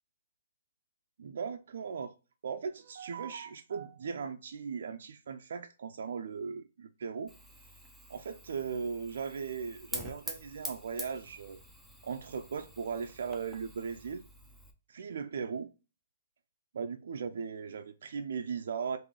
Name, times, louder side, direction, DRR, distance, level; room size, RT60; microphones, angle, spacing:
voice 1, 1.2-2.1 2.4-7.3 8.1-11.6 12.0-14.2 14.9-15.7 16.7-19.0, right 6 dB, 65° right, 0.4 m, -38 dB
Fire, 7.3-14.7, equal, ahead, 0.5 m, -46 dB
3.7 x 2.6 x 3.2 m
hypercardioid pair, 160°, 0 cm